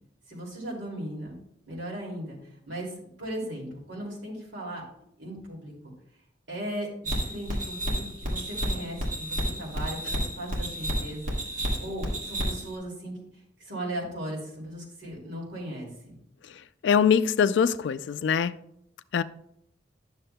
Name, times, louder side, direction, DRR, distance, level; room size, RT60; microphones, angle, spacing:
voice 1, 0.3-1.4 1.7-4.8 5.2-5.7 6.5-11.2 11.6-13.1 13.6-16.2, right 1 dB, 80° right, 2.5 m, -37 dB
sound 1, 7.0-12.8, equal, 45° right, 1.7 m, -31 dB
voice 2, 16.8-18.5 19.1-19.2, left 7 dB, 75° left, 0.3 m, -22 dB
10.0 x 6.5 x 2.2 m
head